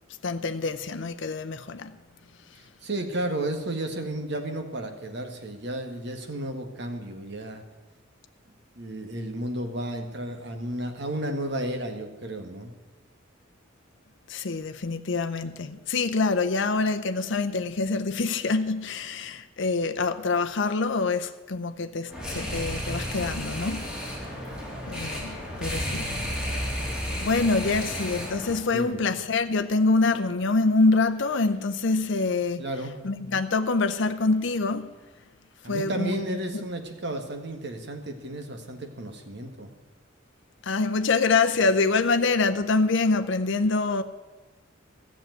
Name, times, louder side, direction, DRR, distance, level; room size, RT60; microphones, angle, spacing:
voice 1, 0.2-2.0 14.3-23.9 24.9-26.1 26.4-26.6 27.2-32.6 33.0-34.9 35.7-36.2 36.5-36.6 40.6-44.0, left 3 dB, 65° left, 0.6 m, -25 dB
voice 2, 2.8-7.6 8.8-12.7 28.7-29.0 32.6-32.9 35.6-39.7, right 1 dB, 60° right, 1.7 m, -33 dB
sound 1, 22.1-28.6, equal, 5° right, 3.3 m, -32 dB
13.5 x 7.4 x 9.2 m
head